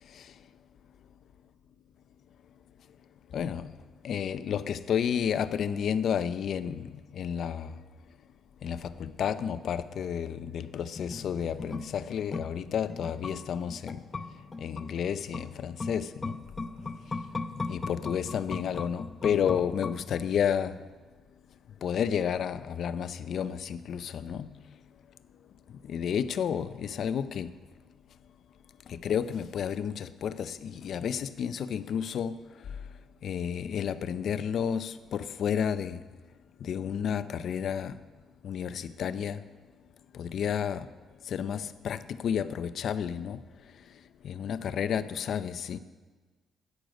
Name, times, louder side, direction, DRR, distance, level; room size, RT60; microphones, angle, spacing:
voice 1, 3.3-3.7 4.0-7.7 8.6-14.0 14.6-16.4 17.7-20.7 21.8-24.5 25.9-27.5 28.9-32.3 33.2-36.0 36.6-37.9 38.4-39.4 40.1-40.8 41.3-43.4 44.2-45.8, left 8 dB, 65° left, 0.5 m, -31 dB
sound 1, 10.9-20.5 20.8-20.9, left 3 dB, 30° left, 0.7 m, -39 dB
13.0 x 9.3 x 5.2 m
cardioid pair, 90°, 0 cm